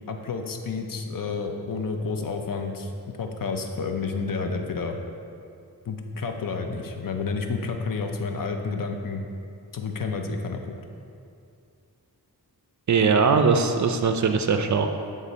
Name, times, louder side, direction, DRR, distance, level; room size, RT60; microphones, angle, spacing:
voice 1, 0.1-2.9 3.2-5.0 5.9-9.2 9.7-10.6, left 4 dB, 55° left, 4 dB, 0.6 m, -30 dB
voice 2, 12.9-14.9, right 5 dB, 50° right, 6 dB, 0.4 m, -20 dB
8.3 x 3.6 x 4.0 m, 2.5 s
wide cardioid pair, 85°, 39 cm